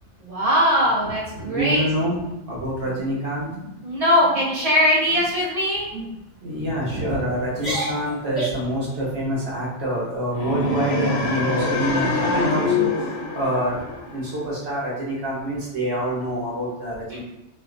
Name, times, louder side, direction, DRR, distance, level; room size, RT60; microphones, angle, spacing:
voice 1, 0.2-1.8 3.8-5.9 17.1-17.2, equal, 45° right, -4 dB, 0.5 m, -20 dB
voice 2, 1.3-2.2 2.5-3.5 6.4-12.9 13.3-13.8 14.1-17.2, right 1 dB, 60° right, -6 dB, 1.1 m, -26 dB
sound 1, 1.8-2.4 2.8-3.1 3.4-3.7 4.1-4.4 5.1-5.4 5.9-6.1 6.8-7.2 7.5-8.7, right 2 dB, ahead, 0.9 m, -32 dB
sound 2, 10.3-14.4, left 3 dB, 70° left, 0.8 m, -24 dB
2.5 x 2.3 x 2.4 m, 0.93 s
omnidirectional pair, 1.2 m